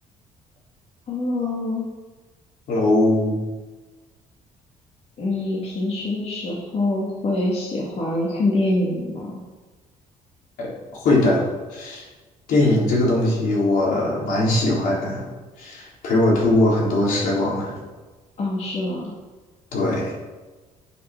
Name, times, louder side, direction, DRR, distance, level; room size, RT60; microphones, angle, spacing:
voice 1, 1.1-1.9 5.2-9.3 18.4-19.1, left 2 dB, 45° left, -5 dB, 2.3 m, -25 dB
voice 2, 2.7-3.4 10.6-11.4 11.7-12.1 12.5-15.3 15.6-17.7 19.7-20.1, left 1 dB, 75° left, -4 dB, 3.9 m, -20 dB
8.7 x 7.1 x 6.2 m, 1.3 s
cardioid pair, 110°, 14 cm